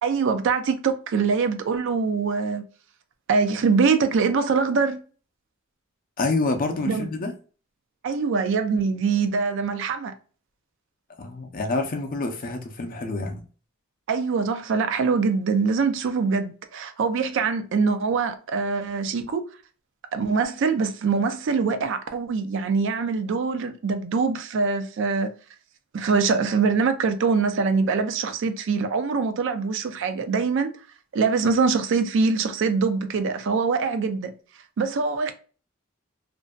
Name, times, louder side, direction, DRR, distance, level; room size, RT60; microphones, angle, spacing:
voice 1, 0.0-2.6 3.3-5.0 6.9-7.1 8.0-10.1 14.1-19.4 20.1-25.3 25.9-30.7 31.1-34.3 34.8-35.3, right 5 dB, 60° right, 0.4 m, -23 dB
voice 2, 6.2-7.3 11.2-13.4, left 3 dB, 40° left, 0.5 m, -27 dB
2.5 x 2.2 x 2.3 m
head